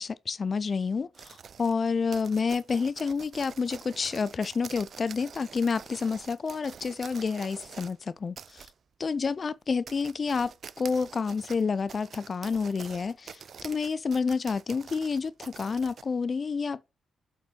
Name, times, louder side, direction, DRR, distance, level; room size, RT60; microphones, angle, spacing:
voice 1, 0.0-8.6 9.0-16.9, left 5 dB, 50° left, 0.4 m, -29 dB
sound 1, 1.1-8.0 8.4-8.7 9.2-9.3 9.7-16.1, right 7 dB, 60° right, 0.4 m, -46 dB
6.9 x 4.4 x 5.2 m
hypercardioid pair, 45°, 0 cm